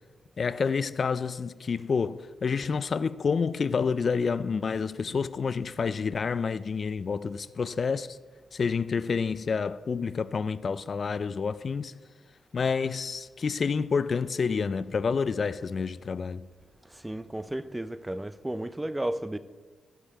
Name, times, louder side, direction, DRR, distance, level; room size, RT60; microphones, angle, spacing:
voice 1, 0.4-8.2 8.5-11.9 12.5-16.5, left 5 dB, 50° left, 0.4 m, -28 dB
voice 2, 16.9-19.4, right 1 dB, 10° right, 0.4 m, -33 dB
14.5 x 5.5 x 4.6 m
cardioid pair, 95°, 0 cm